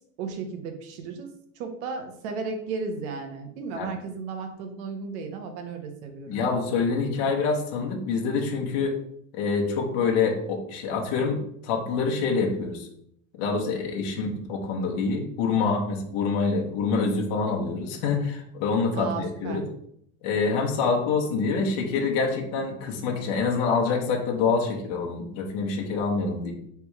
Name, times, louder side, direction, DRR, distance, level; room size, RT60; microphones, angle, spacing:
voice 1, 0.2-1.3 1.6-6.4 18.9-19.6, right 4 dB, 65° right, 5 dB, 0.9 m, -34 dB
voice 2, 6.3-8.9 9.3-12.9 13.4-19.6 20.2-26.5, left 4 dB, 50° left, -1 dB, 1.0 m, -26 dB
3.4 x 3.0 x 4.6 m, 0.70 s
supercardioid pair, 165°, 37 cm